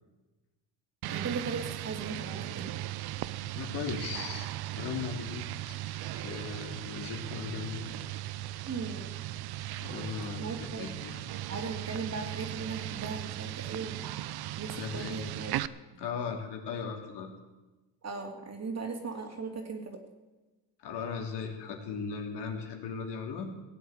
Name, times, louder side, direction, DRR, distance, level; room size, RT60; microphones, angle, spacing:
sound 1, 1.0-15.7, right 14 dB, 55° right, 0.7 m, -38 dB
voice 1, 1.1-2.7 8.7-9.0 10.4-10.9 11.5-14.0 14.6-15.5 15.9-16.0 18.0-20.0, right 4 dB, 35° right, 3 dB, 3.2 m, -38 dB
voice 2, 3.6-4.5 4.8-5.7 6.1-7.9 9.8-11.3 14.7-15.2 16.0-17.3 20.8-23.5, left 6 dB, 65° left, 2 dB, 3.1 m, -37 dB
17.0 x 8.4 x 8.2 m, 1.2 s
supercardioid pair, 85°, 45 cm